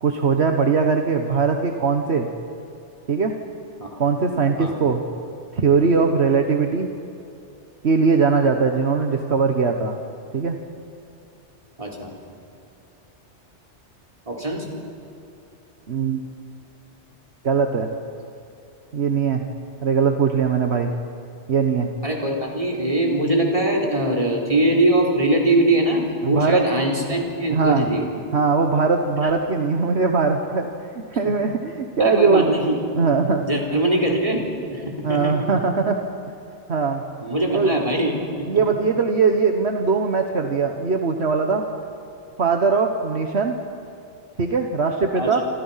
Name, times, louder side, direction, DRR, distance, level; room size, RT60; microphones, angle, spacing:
voice 1, 0.0-2.3 3.1-3.4 4.0-5.0 5.5-6.9 7.8-10.0 10.3-10.6 15.9-16.2 17.4-17.9 18.9-19.4 19.8-20.9 21.5-21.9 26.2-26.6 27.5-27.9 28.3-32.5 32.9-33.4 35.0-36.0 36.7-37.0 37.5-37.7 38.5-41.6 42.4-43.6 44.4-45.4, right 5 dB, 65° right, 4 dB, 1.6 m, -20 dB
voice 2, 11.8-12.1 14.3-14.7 22.0-28.0 29.2-29.3 31.2-31.3 32.0-32.8 33.4-35.5 37.2-38.8 45.1-45.4, right 1 dB, 30° right, 0 dB, 4.1 m, -22 dB
27.5 x 26.5 x 5.8 m, 2.7 s
omnidirectional pair, 1.2 m